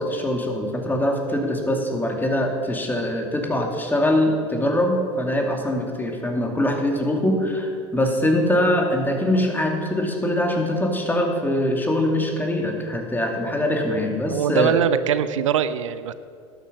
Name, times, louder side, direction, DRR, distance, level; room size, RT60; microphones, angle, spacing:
voice 1, 0.0-14.7, left 1 dB, 10° left, 2 dB, 2.4 m, -23 dB
voice 2, 14.3-16.1, right 10 dB, 85° right, 14 dB, 0.5 m, -22 dB
11.5 x 9.3 x 6.3 m, 2.3 s
hypercardioid pair, 80°, 16 cm